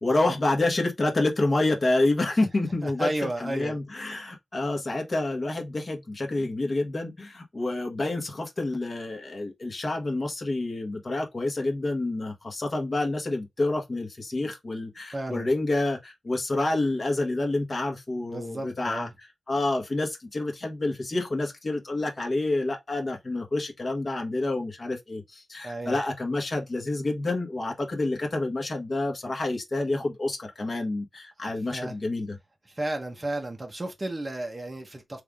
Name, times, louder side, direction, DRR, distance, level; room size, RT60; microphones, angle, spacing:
voice 1, 0.0-3.1 3.4-32.4, left 2 dB, 35° left, 1.2 m, -28 dB
voice 2, 2.8-3.8 15.1-15.5 18.3-19.1 25.6-26.0 31.4-32.0 32.8-35.2, right 1 dB, 25° right, 1.0 m, -33 dB
3.6 x 3.3 x 3.5 m
wide cardioid pair, 125°, 0 cm